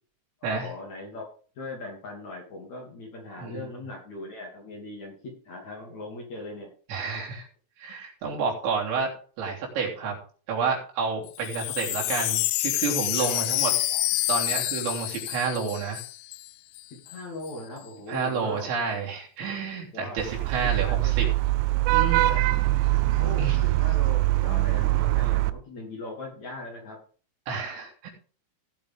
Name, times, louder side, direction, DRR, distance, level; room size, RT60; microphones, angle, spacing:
voice 1, 0.4-1.3 1.6-6.7 13.2-14.0 16.9-18.8 19.9-20.2 20.7-21.3 22.2-22.5 23.2-27.0, left 2 dB, 40° left, -1 dB, 3.5 m, -40 dB
voice 2, 6.9-7.5 7.8-9.1 9.4-10.2 10.5-13.7 14.3-16.0 18.1-21.3 21.9-22.4 23.4-23.6 27.5-28.1, right 5 dB, 65° right, -2 dB, 5.3 m, -30 dB
Wind chime, 11.3-16.5 16.8-16.9 17.1-17.5, left 16 dB, 90° left, 2.4 m, -28 dB
Vehicle horn car horn honking / Traffic noise roadway noise, 20.2-25.5, right 18 dB, 85° right, 3.1 m, -23 dB
17.5 x 7.3 x 3.7 m, 0.41 s
omnidirectional pair, 5.7 m